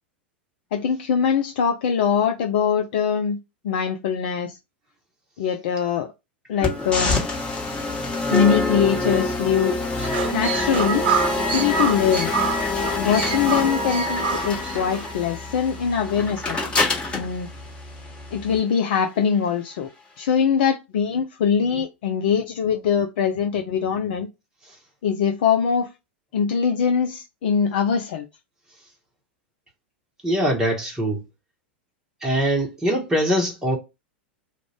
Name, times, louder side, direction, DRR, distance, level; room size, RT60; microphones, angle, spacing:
voice 1, 0.7-3.4 3.6-4.6 5.4-6.1 6.5-7.2 8.3-9.8 10.3-11.1 11.5-12.3 13.0-16.6 17.1-17.5 18.3-19.9 20.2-24.3 25.0-25.9 26.3-28.3, left 7 dB, 60° left, 0.4 m, -22 dB
sound 1, 6.6-18.6, left 2 dB, 15° left, 1.2 m, -26 dB
sound 2, 10.0-15.0, right 6 dB, 60° right, 0.8 m, -27 dB
voice 2, 30.2-31.2 32.2-33.8, equal, 10° right, 1.0 m, -22 dB
2.5 x 2.2 x 3.3 m
figure-of-eight pair, 90°, 6 cm